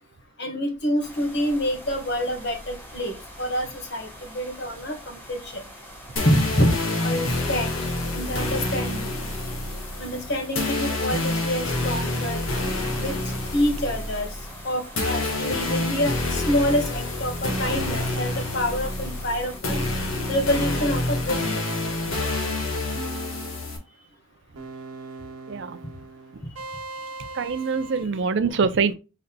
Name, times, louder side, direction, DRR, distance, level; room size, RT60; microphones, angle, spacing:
voice 1, 0.4-5.6 6.2-6.7 7.0-7.7 8.1-9.1 10.0-12.4 13.0-14.3 14.6-19.8 20.3-21.6, equal, 50° left, 1.6 m, -27 dB
sound 1, 1.0-19.6, equal, 10° left, 1.2 m, -44 dB
sound 2, 6.2-23.8, left 2 dB, 70° left, 1.5 m, -28 dB
sound 3, 22.9-23.8 24.6-28.0, right 3 dB, 85° right, 1.1 m, -40 dB
voice 2, 25.5-25.8 27.4-28.9, right 5 dB, 55° right, 0.5 m, -24 dB
5.4 x 3.9 x 2.2 m
head